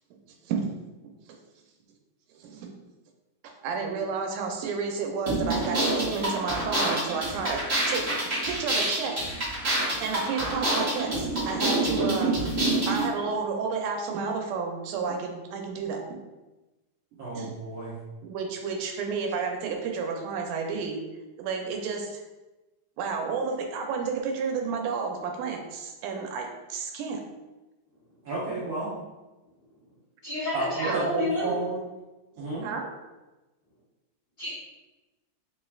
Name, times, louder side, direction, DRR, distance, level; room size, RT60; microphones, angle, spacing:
voice 1, 2.3-2.7 3.4-7.6 7.9-8.1 8.4-9.2 10.0-12.3 12.9-16.0 17.3-17.5 18.2-21.0 21.4-22.2 23.0-27.2 30.9-31.1 32.6-32.9, right 5 dB, 85° right, 2 dB, 2.1 m, -31 dB
sound 1, 5.3-13.1, right 2 dB, 40° right, 0.8 m, -27 dB
voice 2, 17.2-17.9 28.2-28.9 30.5-31.8 32.4-32.7, right 3 dB, 55° right, -9 dB, 1.6 m, -31 dB
voice 3, 30.2-31.5 34.4-34.5, left 1 dB, 55° left, -12 dB, 1.3 m, -30 dB
4.8 x 3.1 x 2.3 m, 1.1 s
omnidirectional pair, 3.5 m